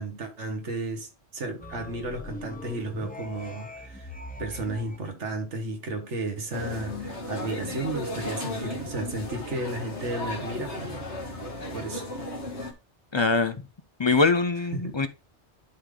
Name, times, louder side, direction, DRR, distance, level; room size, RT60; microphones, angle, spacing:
voice 1, 0.0-4.1 4.4-11.0 11.7-12.1 14.7-15.1, right 2 dB, 90° right, 1.8 m, -33 dB
sound 1, 1.6-5.0, left 1 dB, 10° left, 0.7 m, -41 dB
sound 2, 6.5-12.7, left 1 dB, 75° left, 2.1 m, -35 dB
voice 2, 13.1-13.6 14.0-15.1, left 4 dB, 35° left, 0.4 m, -23 dB
11.0 x 3.8 x 3.3 m
omnidirectional pair, 1.2 m